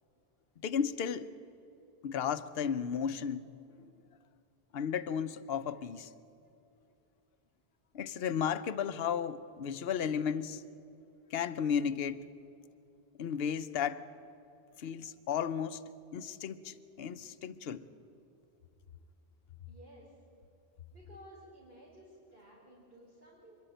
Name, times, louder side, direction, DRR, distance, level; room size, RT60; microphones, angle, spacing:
voice 1, 0.6-1.3 2.0-3.5 3.8-3.9 4.7-6.1 7.9-10.6 11.3-12.2 13.2-14.0 14.8-15.8 16.1-17.8, left 7 dB, 70° left, 12 dB, 0.9 m, -34 dB
voice 2, 19.7-20.2 20.9-23.6, equal, 65° right, -6 dB, 4.6 m, -55 dB
26.0 x 11.5 x 9.2 m, 2.6 s
omnidirectional pair, 1.1 m